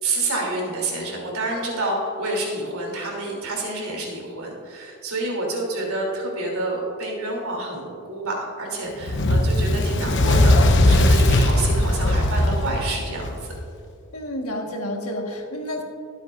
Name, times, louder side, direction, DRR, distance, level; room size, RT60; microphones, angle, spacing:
voice 1, 0.0-13.5, right 2 dB, 85° right, -1 dB, 3.2 m, -28 dB
Fire, 9.0-13.6, left 1 dB, 55° left, 0.9 m, -18 dB
voice 2, 14.1-15.8, left 1 dB, 85° left, 2 dB, 1.5 m, -30 dB
23.5 x 8.4 x 2.6 m, 2.4 s
head